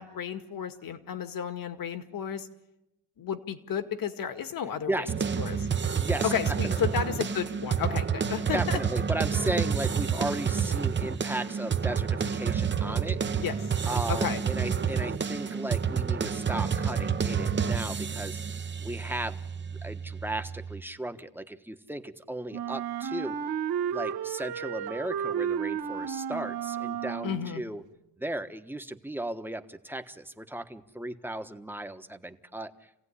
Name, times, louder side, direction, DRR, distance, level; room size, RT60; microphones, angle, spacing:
voice 1, 0.0-2.5 3.2-5.1 5.4-5.7 6.2-8.8 13.4-13.6 14.1-14.4 27.2-27.6, left 8 dB, 60° left, 9 dB, 2.1 m, -32 dB
sound 1, 5.1-20.8, right 7 dB, 30° right, 1.0 m, -29 dB
voice 2, 6.0-6.3 6.6-6.9 8.5-13.2 13.8-18.4 18.8-23.4 23.9-27.8 28.2-32.7, right 1 dB, 5° right, 8 dB, 1.3 m, -35 dB
Wind instrument woodwind instrument, 22.5-27.6, right 8 dB, 70° right, 1.7 m, -32 dB
28.5 x 17.0 x 10.0 m, 0.92 s
cardioid pair, 135°, 39 cm